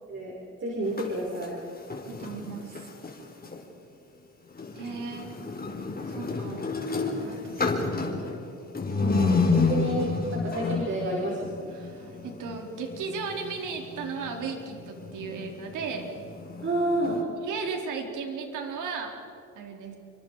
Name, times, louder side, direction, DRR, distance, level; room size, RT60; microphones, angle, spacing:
voice 1, 0.6-1.5 9.0-11.6 16.6-17.2, right 1 dB, 40° right, -2 dB, 5.6 m, -30 dB
sound 1, 0.8-3.6 4.5-17.2, left 4 dB, 30° left, 4.5 m, -31 dB
voice 2, 2.1-2.9 4.8-5.4 6.1-6.6 7.2-7.9 11.7-16.1 17.4-19.1 19.5-20.0, right 5 dB, 85° right, 2 dB, 4.4 m, -36 dB
29.5 x 25.5 x 5.0 m, 2.8 s
cardioid pair, 90°, 30 cm